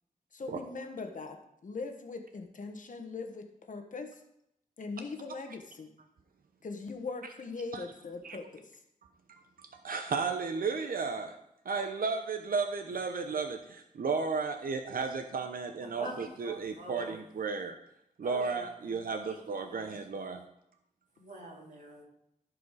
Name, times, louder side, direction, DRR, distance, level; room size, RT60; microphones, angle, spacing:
voice 1, 0.3-1.4 1.6-4.2 4.8-5.9 6.6-8.6, left 4 dB, 60° left, 5 dB, 1.3 m, -40 dB
voice 2, 9.3-11.4 11.6-17.8 18.2-20.4, right 4 dB, 75° right, 6 dB, 0.8 m, -34 dB
voice 3, 15.8-17.2 18.2-18.9 19.2-20.0 21.2-22.0, right 1 dB, 55° right, -2 dB, 3.0 m, -45 dB
15.0 x 4.9 x 4.9 m, 0.77 s
wide cardioid pair, 130°, 15 cm